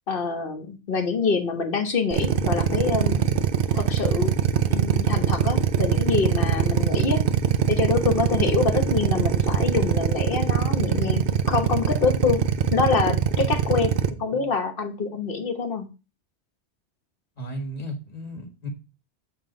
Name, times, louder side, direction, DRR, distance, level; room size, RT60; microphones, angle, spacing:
voice 1, 0.1-3.2 3.7-4.3 4.7-7.2 7.7-12.4 12.7-15.9, left 5 dB, 60° left, 6 dB, 1.2 m, -26 dB
Drill, 2.1-14.1, right 8 dB, 60° right, 0.7 m, -22 dB
voice 2, 14.1-14.5 17.4-18.7, equal, 35° left, 2 dB, 1.8 m, -35 dB
7.4 x 3.5 x 5.1 m, 0.31 s
omnidirectional pair, 1.1 m